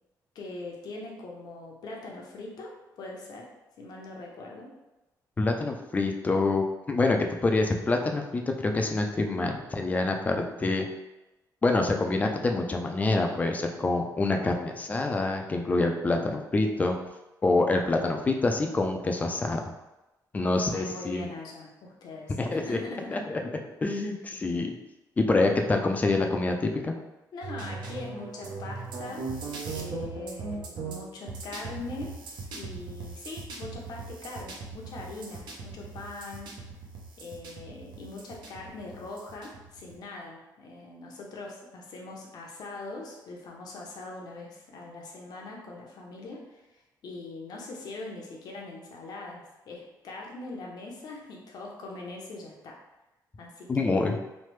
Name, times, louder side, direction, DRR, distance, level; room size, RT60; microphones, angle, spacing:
voice 1, 0.3-3.5 3.8-4.7 20.5-23.2 27.3-29.3 29.7-32.2 32.5-36.5 37.2-52.8 53.4-54.1, left 2 dB, 65° left, -1 dB, 0.7 m, -42 dB
voice 2, 5.4-10.9 11.6-16.9 17.4-19.6 20.3-21.3 22.4-22.8 23.1-23.5 23.8-24.7 25.2-26.9 53.7-54.1, left 2 dB, 20° left, 3 dB, 0.3 m, -26 dB
sound 1, 27.4-40.0, right 4 dB, 75° right, 0.6 m, -39 dB
3.1 x 2.1 x 3.1 m, 1.0 s
cardioid pair, 130°, 8 cm